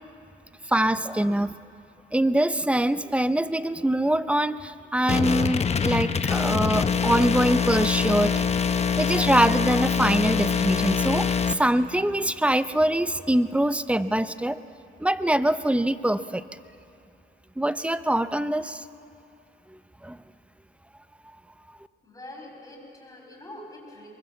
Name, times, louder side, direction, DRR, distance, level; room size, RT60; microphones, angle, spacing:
voice 1, 0.7-1.6 2.1-8.5 9.0-14.6 15.0-16.4 17.6-18.8 20.0-20.2 21.3-21.4, right 1 dB, 5° right, 13 dB, 0.7 m, -24 dB
sound 1, 5.1-11.5, left 6 dB, 35° left, 0.9 m, -24 dB
voice 2, 22.0-24.1, left 1 dB, 15° left, 0 dB, 6.7 m, -44 dB
23.5 x 21.0 x 7.5 m, 2.5 s
cardioid pair, 90°, 20 cm